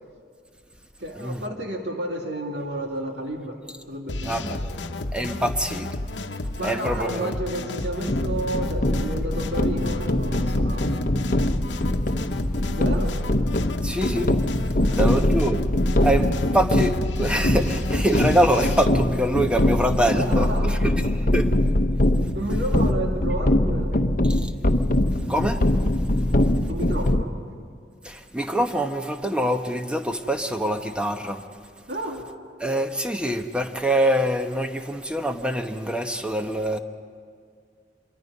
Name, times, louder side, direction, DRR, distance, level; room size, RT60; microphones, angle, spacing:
voice 1, 1.0-3.6 3.9-4.8 6.6-11.0 12.7-13.2 14.8-15.2 16.2-16.3 20.0-20.9 22.3-24.0 26.7-27.3 31.9-32.3, right 1 dB, 75° right, 1 dB, 2.1 m, -31 dB
sound 1, 4.1-18.9, left 2 dB, 85° left, 1.0 m, -32 dB
voice 2, 4.2-4.7 5.1-5.9 6.6-7.4 13.8-14.4 15.0-15.6 16.0-16.2 16.5-21.0 21.3-21.5 24.3-24.5 25.3-25.6 28.0-31.4 32.6-36.8, right 1 dB, 5° right, 6 dB, 1.0 m, -24 dB
sound 2, 8.1-27.2, left 1 dB, 50° left, 0.9 m, -23 dB
26.5 x 22.5 x 5.5 m, 2.2 s
head